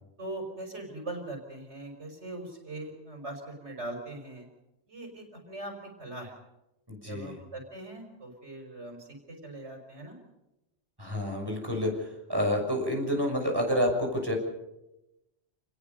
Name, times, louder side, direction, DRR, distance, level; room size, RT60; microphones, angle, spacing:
voice 1, 0.2-4.5 4.9-6.4 7.1-10.2, right 2 dB, 85° right, 3 dB, 5.8 m, -41 dB
voice 2, 6.9-7.4 11.0-14.3, equal, 20° right, 1 dB, 6.3 m, -29 dB
29.0 x 20.0 x 5.4 m, 0.93 s
omnidirectional pair, 1.1 m